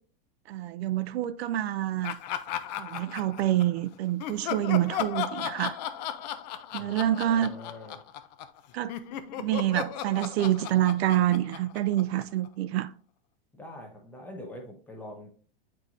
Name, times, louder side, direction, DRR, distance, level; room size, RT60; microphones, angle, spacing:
voice 1, 0.5-2.2 2.7-5.8 6.7-7.6 8.7-8.9 9.4-12.9, right 13 dB, 75° right, 0.5 m, -27 dB
Laughter, 2.0-3.8 4.2-8.6 8.9-12.5, left 9 dB, 45° left, 0.4 m, -36 dB
voice 2, 6.7-8.0 13.5-15.3, left 1 dB, 5° left, 0.8 m, -44 dB
8.2 x 4.6 x 2.5 m
supercardioid pair, 165°, 31 cm